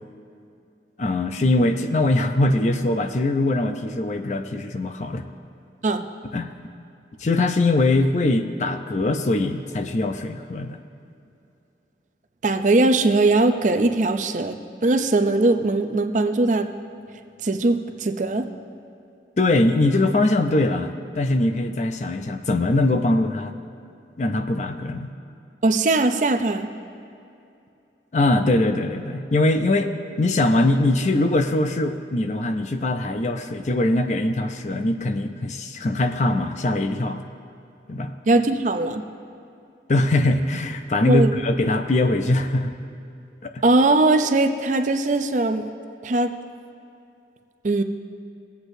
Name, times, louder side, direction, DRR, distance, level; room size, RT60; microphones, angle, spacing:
voice 1, 1.0-5.2 6.3-6.5 7.2-10.8 19.4-23.5 24.2-25.1 28.1-29.9 30.2-37.2 37.9-38.1 39.9-42.7 43.4-43.6, left 2 dB, 40° left, 6 dB, 0.5 m, -22 dB
voice 2, 12.4-16.7 17.4-18.5 25.6-26.7 38.3-39.0 41.0-41.3 43.6-45.6 46.0-46.3 47.6-47.8, right 2 dB, 45° right, 7 dB, 0.5 m, -20 dB
20.0 x 8.1 x 2.6 m, 2.6 s
head